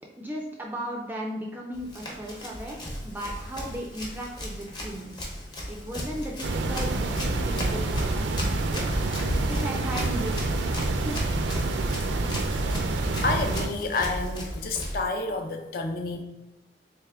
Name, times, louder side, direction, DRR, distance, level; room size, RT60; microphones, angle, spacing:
voice 1, 0.2-5.3 5.7-9.2 9.4-10.3 11.0-11.3, equal, 10° right, -1 dB, 0.3 m, -36 dB
Run, 1.7-15.0, equal, 25° left, 0.7 m, -35 dB
sound 1, 6.4-13.7, right 2 dB, 80° right, 0.4 m, -27 dB
voice 2, 13.2-16.2, left 3 dB, 50° left, 4 dB, 0.5 m, -29 dB
3.5 x 3.1 x 3.4 m, 1.0 s
head